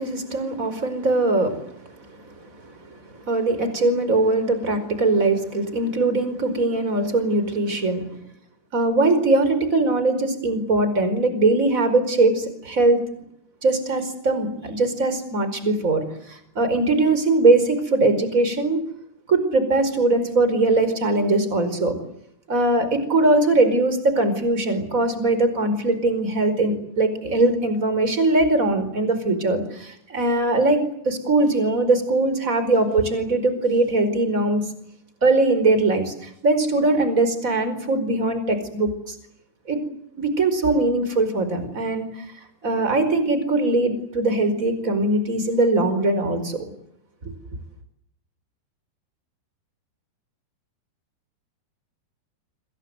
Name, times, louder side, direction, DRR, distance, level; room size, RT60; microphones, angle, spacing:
voice 1, 0.0-2.3 2.6-3.0 3.3-8.0 8.7-13.0 13.6-18.8 19.3-21.9 22.5-34.6 35.2-39.1 39.7-39.8 40.2-42.2 42.6-46.7 47.2-47.3, right 2 dB, 20° right, 10 dB, 4.9 m, -21 dB
26.5 x 25.5 x 8.0 m, 0.74 s
omnidirectional pair, 4.7 m